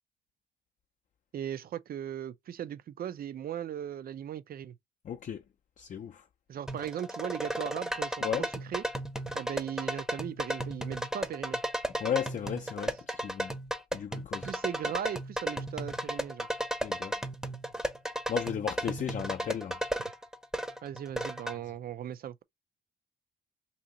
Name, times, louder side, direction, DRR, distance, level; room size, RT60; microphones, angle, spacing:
voice 1, 1.3-4.8 6.5-8.8 9.3-11.6 14.4-16.5 20.8-22.4, right 10 dB, 50° right, 0.4 m, -38 dB
voice 2, 5.0-5.4 5.8-6.3 8.2-8.5 12.0-13.6 13.9-14.5 16.8-17.2 18.3-19.8, left 9 dB, 40° left, 0.4 m, -35 dB
sound 1, 6.7-21.6, right 1 dB, 5° right, 0.7 m, -35 dB
2.8 x 2.8 x 3.7 m
cardioid pair, 90°, 20 cm